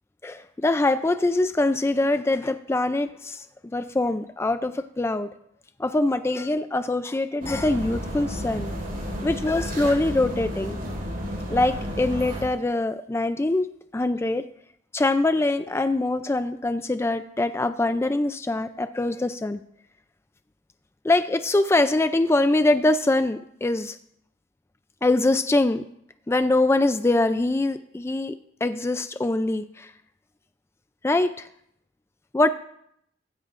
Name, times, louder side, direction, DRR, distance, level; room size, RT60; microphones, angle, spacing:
voice 1, 0.2-5.3 5.8-8.7 9.2-10.8 11.5-13.7 13.9-14.4 14.9-19.6 21.0-24.0 25.0-25.8 26.3-28.3 28.6-29.9 31.0-31.5 32.3-32.5, left 2 dB, 15° left, 10 dB, 0.3 m, -23 dB
sound 1, 7.4-12.4, equal, 55° right, 5.0 m, -32 dB
16.0 x 13.0 x 2.5 m, 0.72 s
head